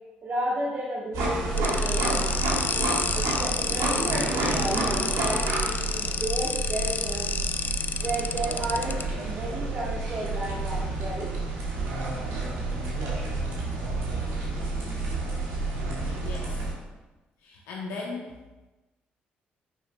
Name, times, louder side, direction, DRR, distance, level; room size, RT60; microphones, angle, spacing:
voice 1, 0.2-2.2 3.1-7.3 8.0-11.3, right 1 dB, 45° right, -5 dB, 1.3 m, -32 dB
sound 1, 1.1-16.7, right 2 dB, 70° right, 1.6 m, -29 dB
sound 2, 1.6-9.0, left 6 dB, 40° left, 0.4 m, -30 dB
voice 2, 16.2-16.6 17.4-18.7, left 3 dB, 70° left, -2 dB, 0.8 m, -38 dB
9.3 x 5.6 x 2.2 m, 1.1 s
hypercardioid pair, 45°, 5 cm